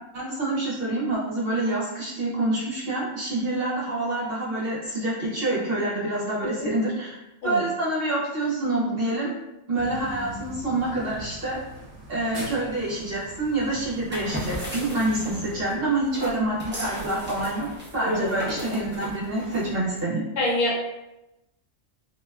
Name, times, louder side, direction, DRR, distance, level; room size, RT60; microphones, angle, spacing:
voice 1, 0.1-9.3 9.7-11.6 12.1-17.7 17.9-20.2, right 2 dB, 55° right, -5 dB, 0.8 m, -27 dB
voice 2, 6.4-6.7 7.4-7.6 18.0-18.3 20.4-20.8, left 1 dB, 60° left, -4 dB, 1.0 m, -25 dB
sound 1, 9.7-15.6, right 1 dB, 80° right, 0.3 m, -41 dB
sound 2, 13.9-20.0, equal, 15° right, 0.5 m, -36 dB
2.5 x 2.1 x 2.3 m, 0.94 s
omnidirectional pair, 1.3 m